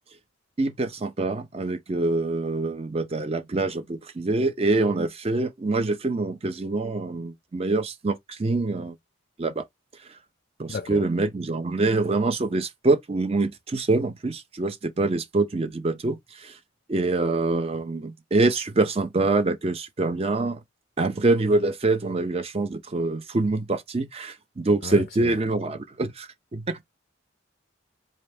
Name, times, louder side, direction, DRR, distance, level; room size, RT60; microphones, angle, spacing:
voice 1, 0.6-9.0 9.4-9.6 10.6-16.6 16.9-20.6 21.0-26.8, right 2 dB, 30° right, 0.5 m, -25 dB
voice 2, 10.7-11.0 24.8-25.4, left 4 dB, 45° left, 0.4 m, -34 dB
4.2 x 2.6 x 3.4 m
head